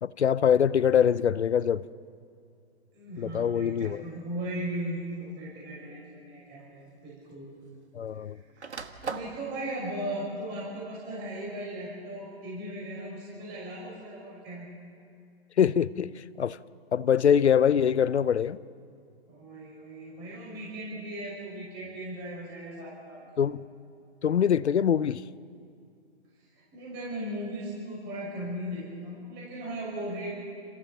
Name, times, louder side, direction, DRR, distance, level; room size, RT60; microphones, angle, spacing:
voice 1, 0.0-1.8 3.2-4.0 7.9-8.4 15.6-16.1 16.4-16.6 16.9-18.6 23.4-23.6 24.2-25.2, left 8 dB, 85° left, 0.7 m, -23 dB
voice 2, 2.9-7.5 8.2-8.3 8.5-14.7 19.3-23.4 26.5-30.3, right 1 dB, 30° right, 6.3 m, -37 dB
sound 1, 3.8-4.1 5.1-5.2 6.6-6.7 6.9-8.1 8.4-9.4, right 5 dB, 90° right, 1.4 m, -39 dB
28.0 x 15.0 x 7.2 m
hypercardioid pair, 120°, 33 cm